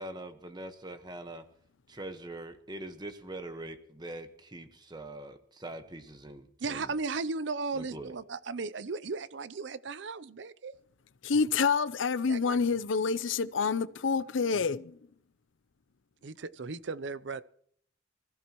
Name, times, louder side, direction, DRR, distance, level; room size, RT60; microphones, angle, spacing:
voice 1, 0.0-1.4 1.9-6.9 7.7-8.1, right 1 dB, 25° right, 1.3 m, -43 dB
voice 2, 6.6-10.7 12.3-12.6 16.2-17.4, right 4 dB, 70° right, 0.6 m, -36 dB
voice 3, 11.2-14.9, left 5 dB, 85° left, 0.6 m, -28 dB
24.0 x 15.0 x 3.1 m
head